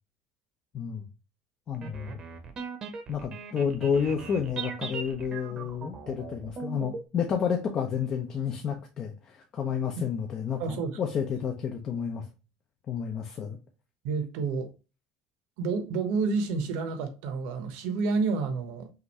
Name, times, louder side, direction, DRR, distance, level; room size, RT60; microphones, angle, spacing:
voice 1, 0.7-1.0 1.7-2.2 3.1-12.2 12.9-13.6, left 7 dB, 30° left, 0.7 m, -30 dB
sound 1, 1.7-7.0, right 5 dB, 30° right, 0.9 m, -39 dB
voice 2, 10.6-11.0 14.0-14.7 15.6-18.9, right 4 dB, 75° right, 1.2 m, -29 dB
5.8 x 2.7 x 3.1 m
cardioid pair, 175°, 3 cm